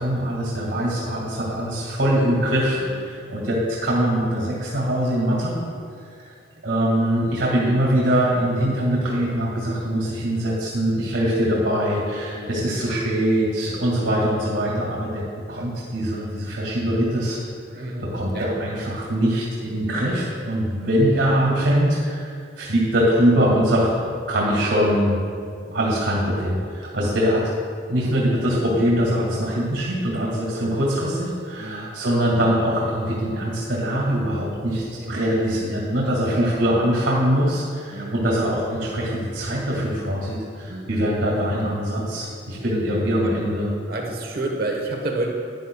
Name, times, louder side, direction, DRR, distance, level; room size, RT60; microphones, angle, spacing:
voice 1, 0.0-5.6 6.6-17.4 17.7-25.2 25.7-27.4 27.9-43.7, equal, 80° right, -4 dB, 2.1 m, -22 dB
voice 2, 17.7-18.0 18.3-18.5 25.6-25.8 30.1-30.2 31.6-31.9 35.0-35.2 36.0-36.5 37.9-38.2 40.7-40.9 42.1-42.3 43.2-43.3 43.9-45.3, right 2 dB, 55° right, 0 dB, 1.1 m, -31 dB
13.0 x 9.7 x 2.3 m, 2.2 s
head